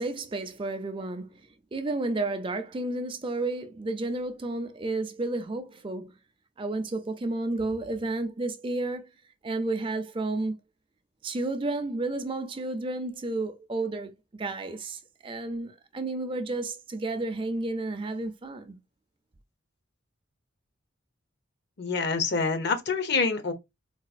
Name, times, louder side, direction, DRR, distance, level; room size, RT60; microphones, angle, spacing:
voice 1, 0.0-6.1 6.6-9.1 9.4-10.5 11.2-18.8, right 2 dB, 25° right, 0.4 m, -32 dB
voice 2, 21.8-23.5, left 4 dB, 55° left, 0.8 m, -26 dB
4.0 x 2.3 x 2.4 m
head